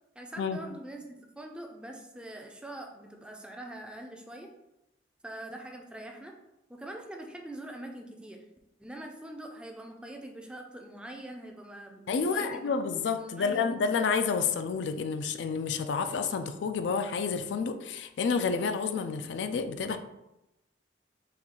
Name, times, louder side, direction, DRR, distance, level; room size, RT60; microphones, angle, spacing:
voice 1, 0.2-4.5 5.2-6.3 6.7-8.5 8.8-12.7 13.1-13.7, right 1 dB, 5° right, 1 dB, 0.4 m, -43 dB
voice 2, 12.1-20.0, left 5 dB, 80° left, 9 dB, 0.3 m, -29 dB
4.2 x 2.4 x 3.7 m, 0.91 s
head